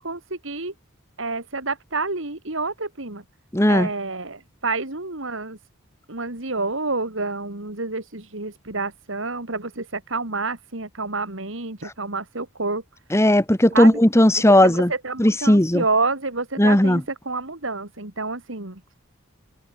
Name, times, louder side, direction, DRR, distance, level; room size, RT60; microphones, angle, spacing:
voice 1, 0.0-0.7 1.2-3.2 3.7-5.6 6.1-12.8 13.7-14.0 14.6-18.8, right 3 dB, 65° right, 2.8 m, -28 dB
voice 2, 3.5-3.9 13.1-14.9 15.2-15.8 16.6-17.0, left 1 dB, 15° left, 1.4 m, -16 dB
head